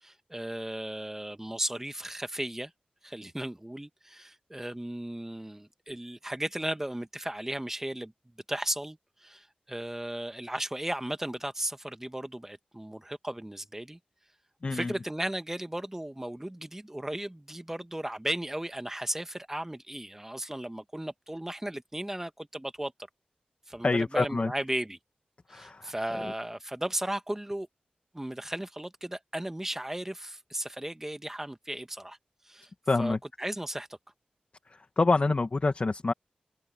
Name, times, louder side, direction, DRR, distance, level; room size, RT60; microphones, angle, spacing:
voice 1, 0.0-2.7 3.0-8.1 8.5-14.0 14.7-22.9 23.7-25.0 25.5-27.7 28.1-32.2 32.4-32.7 33.0-34.0, right 1 dB, 15° right, 1.5 m, -35 dB
voice 2, 14.6-14.9 23.8-24.5 25.5-26.3 32.9-33.2 34.7-36.1, left 3 dB, 50° left, 1.7 m, -27 dB
cardioid pair, 50°, 3 cm